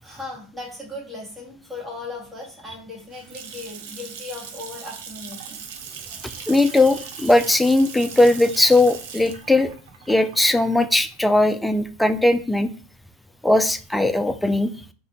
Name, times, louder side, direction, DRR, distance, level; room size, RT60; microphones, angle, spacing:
voice 1, 0.0-5.6, left 2 dB, 15° right, -3 dB, 1.5 m, -37 dB
Water tap faucet / Sink (filling or washing) / Splash splatter, 2.9-11.7, right 7 dB, 70° right, 0.5 m, -39 dB
voice 2, 6.4-9.7 10.1-12.7 13.4-14.7, left 2 dB, 5° left, 9 dB, 0.3 m, -19 dB
3.3 x 2.4 x 2.8 m, 0.39 s
hypercardioid pair, 85°, 0 cm